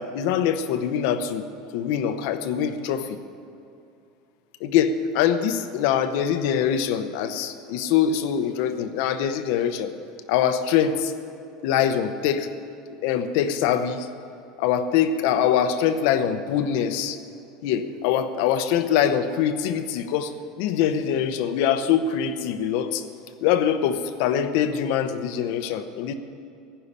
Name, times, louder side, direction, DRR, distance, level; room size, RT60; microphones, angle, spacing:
voice 1, 0.0-1.4 1.7-3.2 4.6-9.9 10.3-11.1 11.6-12.5 13.0-14.1 14.6-17.2 17.6-23.0 23.4-26.1, left 8 dB, 55° left, 10 dB, 0.8 m, -23 dB
16.0 x 5.6 x 9.8 m, 2.6 s
cardioid pair, 180°, 0 cm